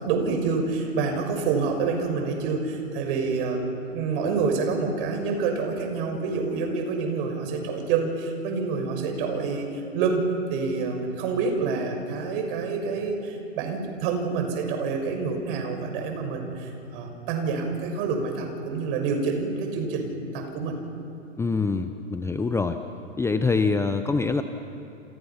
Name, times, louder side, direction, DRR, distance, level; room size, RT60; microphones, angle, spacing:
voice 1, 0.0-20.8, right 4 dB, 50° right, 4 dB, 6.2 m, -27 dB
voice 2, 21.4-22.8 23.2-24.4, left 4 dB, 5° left, 8 dB, 0.8 m, -24 dB
29.5 x 29.5 x 5.8 m, 2.9 s
hypercardioid pair, 115°, 37 cm